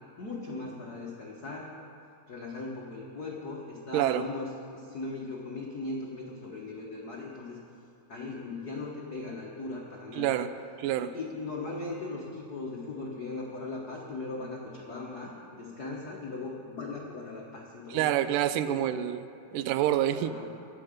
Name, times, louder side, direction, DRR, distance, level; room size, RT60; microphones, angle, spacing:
voice 1, 0.2-1.7 2.3-7.6 8.1-10.4 11.0-18.1 18.6-19.0 20.1-20.5, left 3 dB, 70° left, -3 dB, 0.9 m, -39 dB
voice 2, 3.9-4.3 10.2-10.5 10.8-11.1 17.9-19.2 19.5-20.3, right 12 dB, 85° right, 12 dB, 2.2 m, -27 dB
23.0 x 7.9 x 5.2 m, 2.6 s
omnidirectional pair, 3.8 m